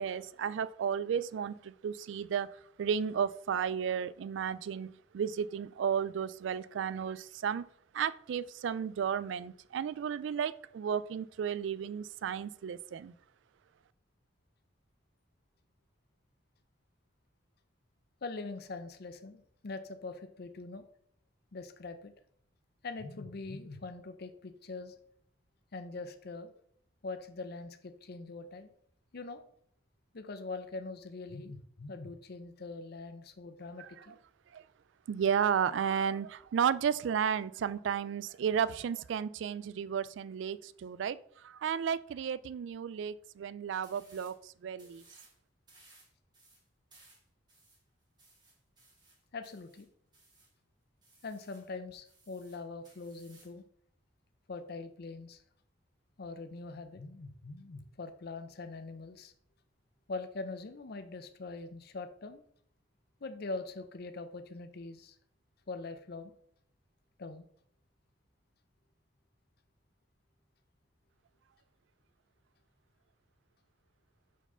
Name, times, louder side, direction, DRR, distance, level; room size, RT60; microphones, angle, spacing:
voice 1, 0.0-7.7 7.9-13.1 33.8-34.1 34.5-34.6 35.1-45.0, right 7 dB, 70° right, 17 dB, 0.3 m, -33 dB
voice 2, 18.2-20.8 21.5-22.1 22.8-24.9 25.7-26.5 27.0-28.7 29.1-29.4 30.1-34.2 44.7-44.9 49.3-49.9 51.2-53.6 54.5-55.4 56.2-59.3 60.1-62.4 63.2-65.1 65.7-66.3 67.2-67.4, left 3 dB, 55° left, 9 dB, 0.6 m, -43 dB
sound 1, 43.8-44.4 44.7-45.4 45.7-50.5 51.0-51.7 52.0-53.6, right 2 dB, 25° right, 1.8 m, -62 dB
4.6 x 4.5 x 5.5 m, 0.64 s
head